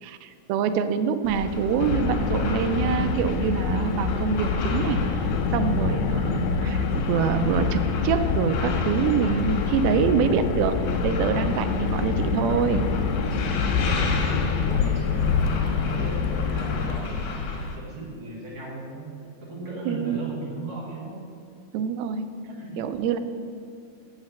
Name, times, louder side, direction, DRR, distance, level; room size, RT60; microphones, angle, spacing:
voice 1, 0.0-5.0 5.5-10.8 11.0-12.9 19.9-20.2 21.7-22.3 22.8-23.2, right 7 dB, 90° right, 10 dB, 2.4 m, -25 dB
sound 1, 1.2-17.8, left 4 dB, 70° left, 2.4 m, -32 dB
Car, 1.8-17.0, left 5 dB, 85° left, 2.4 m, -26 dB
voice 2, 13.4-17.4 17.8-19.1 19.4-21.2 22.5-22.9, right 2 dB, 45° right, -5 dB, 2.1 m, -37 dB
6.4 x 5.7 x 7.2 m, 2.4 s
omnidirectional pair, 4.2 m